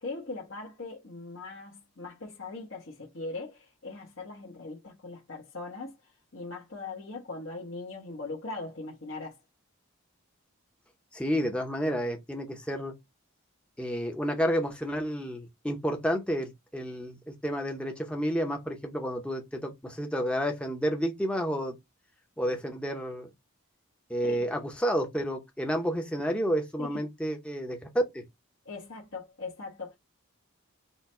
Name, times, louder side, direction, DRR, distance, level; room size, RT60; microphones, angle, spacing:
voice 1, 0.0-6.0 6.3-9.4 24.3-24.4 26.8-27.0 28.6-29.9, left 3 dB, 65° left, 1.2 m, -40 dB
voice 2, 11.1-12.9 13.8-21.8 22.4-23.3 24.1-28.2, equal, 5° left, 0.7 m, -30 dB
4.5 x 2.2 x 4.3 m
head